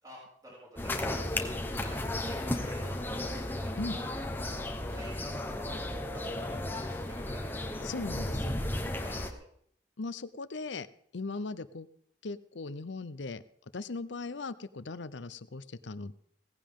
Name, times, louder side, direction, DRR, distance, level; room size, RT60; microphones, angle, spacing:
voice 1, 0.0-1.2 1.7-4.1 4.5-4.6 4.9-5.3 5.6-5.7 6.1-7.8 9.0-9.4, right 1 dB, 20° right, -6 dB, 6.9 m, -49 dB
sound 1, 0.8-9.3, left 1 dB, 10° left, 1.1 m, -34 dB
voice 2, 7.8-8.5 10.0-10.9 11.1-11.9 12.2-13.4 13.7-16.1, left 3 dB, 80° left, 15 dB, 0.7 m, -38 dB
17.5 x 15.5 x 3.7 m, 0.65 s
head